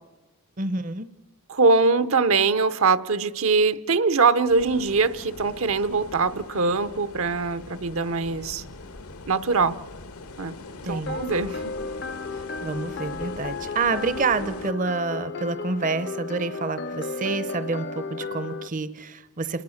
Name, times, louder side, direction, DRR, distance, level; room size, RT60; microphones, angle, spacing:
voice 1, 0.6-1.1 10.8-11.2 12.3-19.6, right 4 dB, 35° right, 0.7 m, -28 dB
voice 2, 1.5-8.6 9.3-9.8 10.4-10.6 10.8-11.7, right 4 dB, 70° right, 0.9 m, -22 dB
sound 1, 4.5-14.7, left 3 dB, 80° left, 1.4 m, -42 dB
sound 2, 11.1-18.7, left 4 dB, 50° left, 0.7 m, -34 dB
28.5 x 19.5 x 6.5 m
head